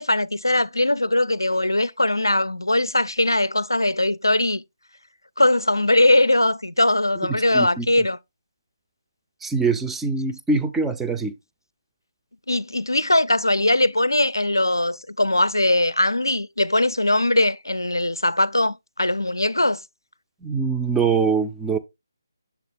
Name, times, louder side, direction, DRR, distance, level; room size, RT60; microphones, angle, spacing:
voice 1, 0.0-4.6 5.4-8.2 12.5-19.8, left 1 dB, 85° left, 0.4 m, -20 dB
voice 2, 7.3-7.9 9.4-11.3 20.4-21.8, right 4 dB, 5° right, 0.4 m, -23 dB
6.9 x 3.9 x 3.5 m
figure-of-eight pair, 150°, 2 cm